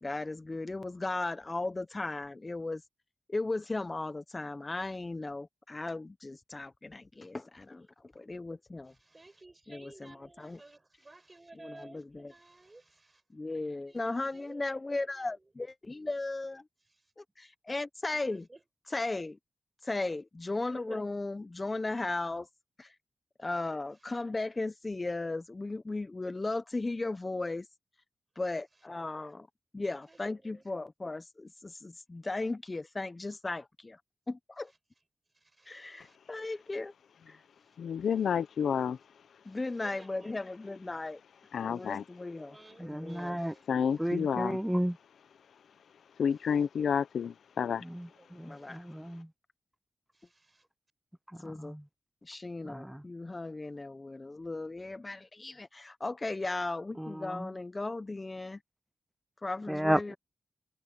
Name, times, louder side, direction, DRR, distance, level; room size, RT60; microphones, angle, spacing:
voice 1, 0.0-2.8 3.3-8.9 9.7-10.6 11.6-12.3 13.3-16.6 17.2-18.4 18.9-19.4 19.9-22.5 22.8-22.9 23.4-27.7 28.4-29.5 29.7-34.0 34.3-34.7 35.7-36.9 37.3-37.4 39.4-41.2 41.6-43.4 48.4-48.9 51.4-51.7 52.2-58.6 59.4-60.1, left 2 dB, 30° left, 0.8 m, -36 dB
voice 2, 8.9-13.4 13.9-15.5 16.9-17.1 18.1-18.6 20.7-21.1 24.0-24.2 29.8-30.7 34.7-34.8 35.3-36.2 37.6-37.8 39.5-40.3 41.7-42.0 42.4-43.7 44.0-44.1 46.3-46.7 48.1-48.8 50.1-50.6, right 2 dB, 30° right, 5.6 m, -55 dB
voice 3, 37.8-39.0 41.5-42.0 43.7-44.6 46.2-47.8, left 7 dB, 85° left, 0.7 m, -30 dB
voice 4, 42.9-43.5 44.0-44.9 47.9-48.1 48.4-49.3 51.6-51.8 52.6-53.0 57.0-57.5 59.7-60.1, equal, 5° right, 0.6 m, -32 dB
cardioid pair, 65°, 0 cm